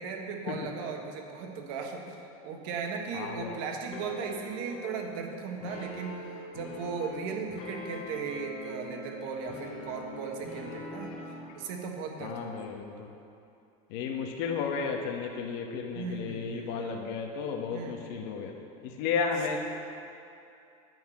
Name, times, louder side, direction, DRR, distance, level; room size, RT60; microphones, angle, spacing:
voice 1, 0.0-11.1 11.5-12.6 15.9-17.0 17.7-18.3 19.5-19.6, right 5 dB, 65° right, 2 dB, 1.5 m, -37 dB
voice 2, 3.1-3.5 12.2-12.9 13.9-18.5 18.8-19.6, left 5 dB, 60° left, 2 dB, 1.1 m, -33 dB
sound 1, 3.9-11.6, left 2 dB, 45° left, 2.0 m, -43 dB
10.5 x 6.0 x 7.8 m, 2.6 s
cardioid pair, 160°, 19 cm